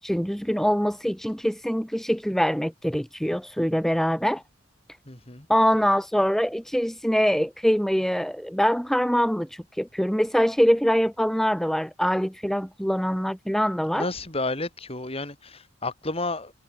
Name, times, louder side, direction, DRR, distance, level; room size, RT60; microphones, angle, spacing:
voice 1, 0.0-4.4 5.5-14.1, equal, ahead, 1.6 m, -24 dB
voice 2, 5.1-5.5 13.9-16.5, left 2 dB, 30° left, 4.5 m, -31 dB
head